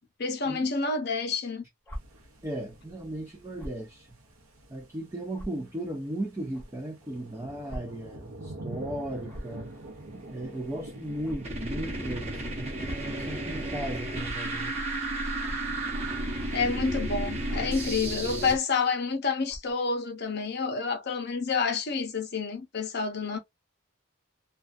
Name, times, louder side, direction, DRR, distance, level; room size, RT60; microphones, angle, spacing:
voice 1, 0.2-1.6 16.5-23.4, left 5 dB, 50° left, 0.6 m, -29 dB
sound 1, 1.8-2.0 3.6-3.8 4.6-4.7 5.3-5.5 6.5-6.7 7.7-7.8 8.1-8.3 9.3-9.6 11.2-11.4 12.6-13.1 14.2-14.4 15.4-15.6 16.4-16.6 17.5-17.7 18.5-18.8 19.5-19.7, equal, 10° left, 0.8 m, -40 dB
sound 2, 1.9-18.2, right 1 dB, 90° right, 0.7 m, -47 dB
voice 2, 2.4-4.2 4.7-9.8 10.1-14.9, right 1 dB, 15° right, 0.3 m, -36 dB
sound 3, 10.4-18.6, right 1 dB, 30° right, 0.8 m, -33 dB
2.4 x 2.2 x 2.4 m
head